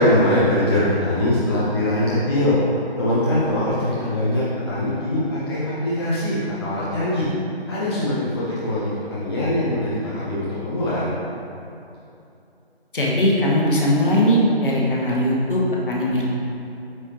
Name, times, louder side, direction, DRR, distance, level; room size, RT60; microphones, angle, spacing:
voice 1, 0.0-2.6 3.0-7.3 7.7-11.1, left 1 dB, 25° left, -10 dB, 0.9 m, -22 dB
voice 2, 12.9-16.2, equal, 55° left, -4 dB, 1.5 m, -19 dB
8.6 x 4.9 x 3.0 m, 2.7 s
figure-of-eight pair, 155°, 32 cm